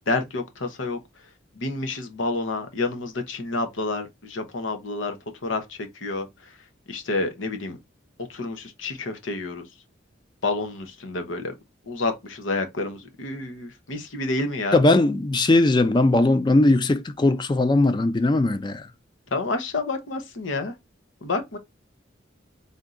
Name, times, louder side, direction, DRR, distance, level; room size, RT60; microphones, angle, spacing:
voice 1, 0.1-1.0 1.6-5.1 5.4-5.6 6.0-6.3 6.9-7.8 8.3-9.6 10.4-11.4 11.9-14.8 19.3-20.7 21.2-21.6, left 3 dB, 85° left, 1.0 m, -29 dB
voice 2, 14.7-18.8, left 2 dB, 25° left, 0.4 m, -19 dB
3.6 x 2.7 x 3.7 m
head